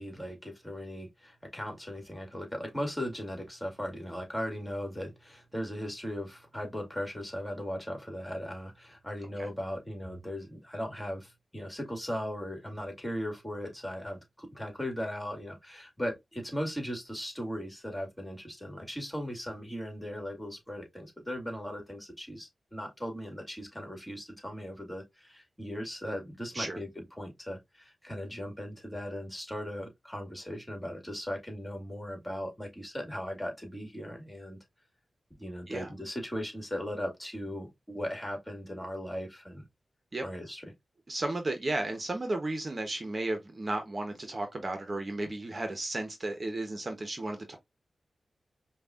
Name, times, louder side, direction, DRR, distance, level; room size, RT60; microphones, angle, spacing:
voice 1, 0.0-34.6 35.4-39.6 40.2-40.7, equal, 10° left, 2.1 m, -38 dB
voice 2, 41.1-47.6, right 2 dB, 45° right, 0.9 m, -34 dB
5.1 x 2.4 x 2.4 m
cardioid pair, 45°, 0 cm